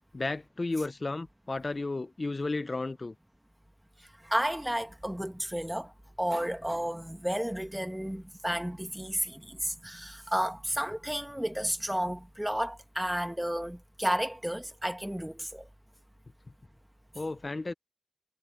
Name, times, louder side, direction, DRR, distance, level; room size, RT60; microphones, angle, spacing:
voice 1, 0.1-3.1 17.1-17.7, left 3 dB, 35° left, 0.8 m, -33 dB
voice 2, 4.2-15.7, equal, 5° right, 1.5 m, -32 dB
cardioid pair, 50°, 0 cm